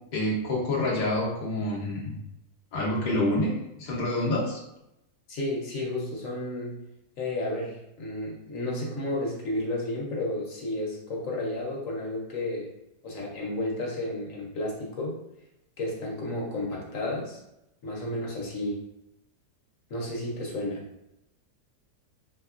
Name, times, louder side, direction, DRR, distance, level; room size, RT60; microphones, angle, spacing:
voice 1, 0.1-2.2 2.7-3.5 3.8-4.6, left 1 dB, 40° left, -4 dB, 0.6 m, -27 dB
voice 2, 5.3-6.7 7.2-12.7 13.0-15.2 15.8-17.4 17.8-18.8 19.9-20.8, left 1 dB, 60° left, -3 dB, 1.1 m, -32 dB
3.3 x 2.9 x 2.4 m, 0.86 s
omnidirectional pair, 1.7 m